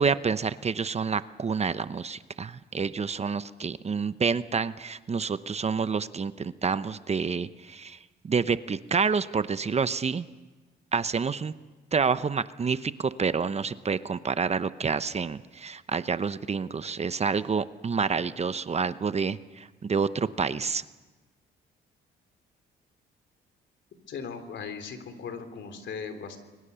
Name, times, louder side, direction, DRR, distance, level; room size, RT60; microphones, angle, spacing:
voice 1, 0.0-8.0 8.2-10.3 10.9-11.5 11.9-20.8, right 5 dB, 35° right, 14 dB, 0.8 m, -28 dB
voice 2, 24.1-26.4, left 6 dB, 65° left, 8 dB, 3.4 m, -38 dB
30.0 x 22.5 x 6.9 m, 1.2 s
cardioid pair, 90°, 20 cm